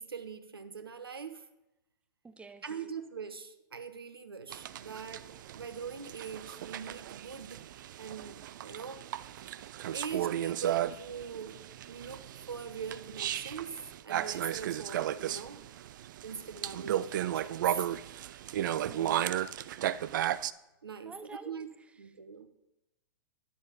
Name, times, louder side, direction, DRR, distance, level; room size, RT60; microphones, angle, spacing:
voice 1, 0.0-1.5 2.6-7.7 8.0-9.1 9.9-11.6 11.9-15.6 16.2-17.8 20.8-21.7 22.0-22.5, right 6 dB, 85° right, 10 dB, 0.8 m, -42 dB
voice 2, 2.2-2.7 18.7-19.3 21.0-21.6, right 3 dB, 10° right, 12 dB, 0.5 m, -49 dB
sound 1, 4.5-20.5, right 12 dB, 60° right, 0.4 m, -35 dB
10.0 x 7.1 x 4.9 m, 0.92 s
hypercardioid pair, 110°, 12 cm